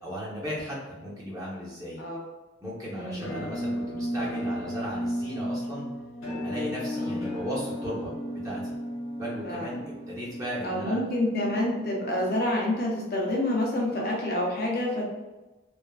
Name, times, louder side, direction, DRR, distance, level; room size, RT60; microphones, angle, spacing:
voice 1, 0.0-2.0 2.6-5.9 6.4-8.1 8.4-8.8 9.2-11.0, equal, 15° right, -6 dB, 0.7 m, -36 dB
voice 2, 2.9-3.5 6.9-7.2 9.4-9.8 10.6-15.1, left 1 dB, 45° left, -2 dB, 0.5 m, -28 dB
Musical instrument, 3.2-13.0, equal, 75° left, 1.0 m, -34 dB
3.2 x 2.1 x 2.3 m, 1.1 s
head